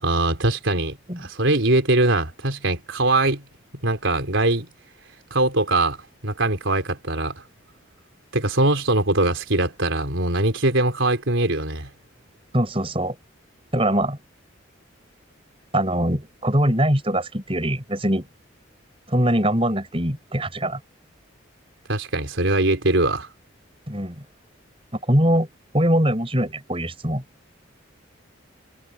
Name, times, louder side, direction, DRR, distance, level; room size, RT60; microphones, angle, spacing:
voice 1, 0.0-3.4 3.8-4.7 5.3-6.0 6.2-7.4 8.3-11.9 21.9-23.3, right 2 dB, 75° right, 3.7 m, -22 dB
voice 2, 12.5-13.1 13.7-14.2 15.7-18.3 19.1-20.8 23.9-24.2 24.9-25.5 25.7-27.2, right 1 dB, 25° right, 6.5 m, -22 dB
head